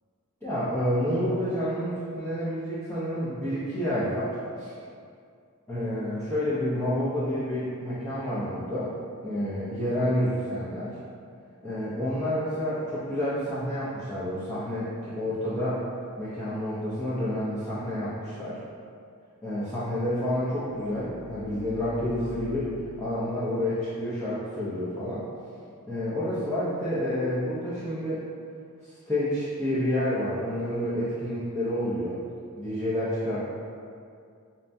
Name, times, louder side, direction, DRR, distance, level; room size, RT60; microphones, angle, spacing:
voice 1, 0.4-4.7 5.7-8.9 9.2-10.9 11.6-15.8 16.2-18.6 19.4-22.7 23.0-25.2 25.9-28.2 28.9-32.2 32.6-33.4, equal, 10° left, -12 dB, 0.5 m, -29 dB
sound 1, 20.7-26.2, left 7 dB, 75° left, 0.3 m, -44 dB
5.5 x 2.2 x 2.6 m, 2.3 s
head